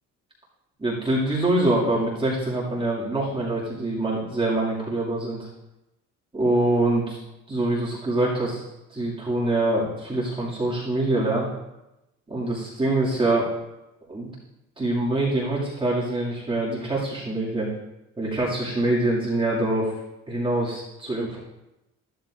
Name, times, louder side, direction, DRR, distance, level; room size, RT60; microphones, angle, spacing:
voice 1, 0.8-5.5 6.3-7.2 7.5-8.6 8.9-11.5 12.3-13.5 14.1-14.3 14.8-17.7 18.2-19.9 20.3-21.4, right 2 dB, 15° right, -7 dB, 2.2 m, -24 dB
13.0 x 12.5 x 2.5 m, 0.94 s
cardioid pair, 140°, 31 cm